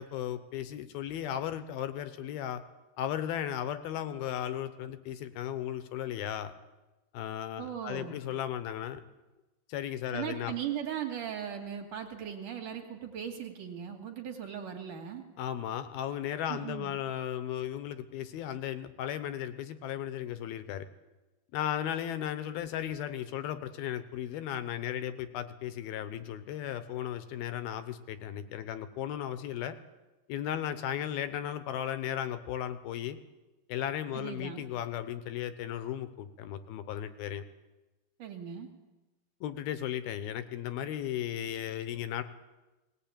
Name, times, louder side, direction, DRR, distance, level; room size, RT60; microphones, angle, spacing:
voice 1, 0.0-2.6 3.0-6.5 7.1-9.0 9.7-10.5 15.4-20.9 21.5-29.8 30.3-33.2 33.7-37.4 39.4-42.2, left 10 dB, 75° left, 11 dB, 2.6 m, -35 dB
voice 2, 7.6-8.2 10.1-15.2 16.5-16.9 34.1-34.6 38.2-38.7, right 9 dB, 55° right, 4 dB, 3.4 m, -38 dB
19.5 x 19.0 x 8.8 m, 1.1 s
omnidirectional pair, 4.9 m